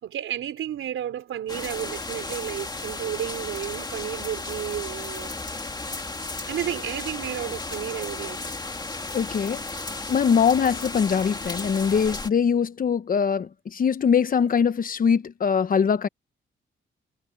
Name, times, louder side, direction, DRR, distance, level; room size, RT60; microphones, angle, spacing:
voice 1, 0.0-5.3 6.4-8.4, right 10 dB, 85° right, 4.4 m, -32 dB
sound 1, 1.5-12.3, left 3 dB, 20° left, 2.0 m, -34 dB
voice 2, 9.1-9.6 10.1-16.1, left 6 dB, 45° left, 1.0 m, -22 dB
cardioid pair, 120°, 20 cm